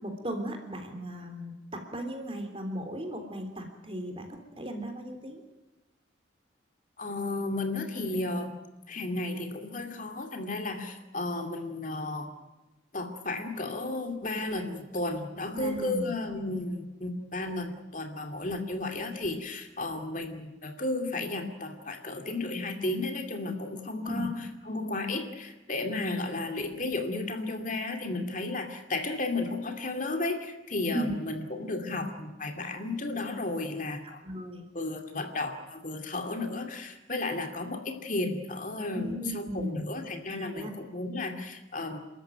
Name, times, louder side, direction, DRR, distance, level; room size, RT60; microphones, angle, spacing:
voice 1, 0.0-5.4 15.5-16.1 24.1-24.3 30.9-31.1 34.0-34.6 38.9-39.8 40.4-40.7, equal, 30° right, 5 dB, 3.4 m, -36 dB
voice 2, 7.0-8.6 8.9-12.3 12.9-24.4 24.7-34.2 34.7-42.0, left 2 dB, 45° left, 5 dB, 2.4 m, -33 dB
29.0 x 13.5 x 9.2 m, 1.1 s
head